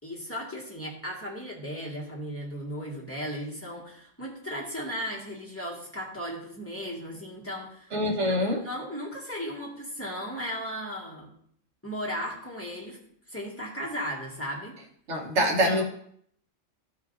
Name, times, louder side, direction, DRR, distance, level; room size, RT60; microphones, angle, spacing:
voice 1, 0.0-7.9 8.2-11.3 11.8-13.0 13.3-14.8 15.3-15.8, equal, 10° left, -5 dB, 1.9 m, -36 dB
voice 2, 7.9-8.6 15.1-15.8, equal, 80° right, 0 dB, 1.6 m, -24 dB
14.5 x 4.9 x 2.7 m, 0.65 s
omnidirectional pair, 1.2 m